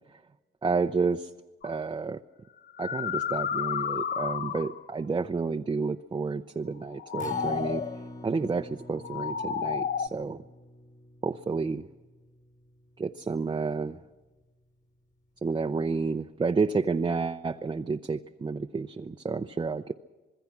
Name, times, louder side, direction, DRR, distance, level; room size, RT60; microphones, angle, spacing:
voice 1, 0.6-1.3 1.6-2.2 2.8-7.8 8.2-10.4 11.2-11.9 13.0-14.0 15.4-19.9, right 4 dB, 25° right, 0.6 m, -30 dB
sound 1, 1.6-1.8 2.6-4.9 6.8-8.0 8.9-10.1, left 7 dB, 55° left, 0.8 m, -31 dB
Acoustic guitar, 7.2-13.5 13.9-14.0 14.4-14.5, left 1 dB, 40° left, 3.2 m, -45 dB
26.0 x 21.0 x 6.0 m
cardioid pair, 90°, 20 cm